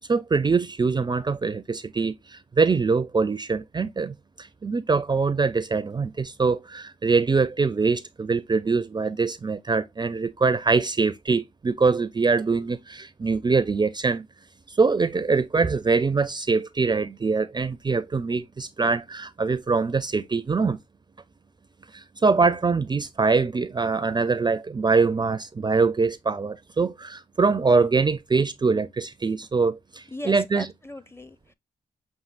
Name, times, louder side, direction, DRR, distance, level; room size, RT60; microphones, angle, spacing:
voice 1, 0.0-14.3 14.7-20.8 21.9-30.7, right 4 dB, 25° right, 0.4 m, -23 dB
voice 2, 30.1-31.5, left 1 dB, 15° left, 0.6 m, -38 dB
6.5 x 2.7 x 2.4 m
supercardioid pair, 55°, 16 cm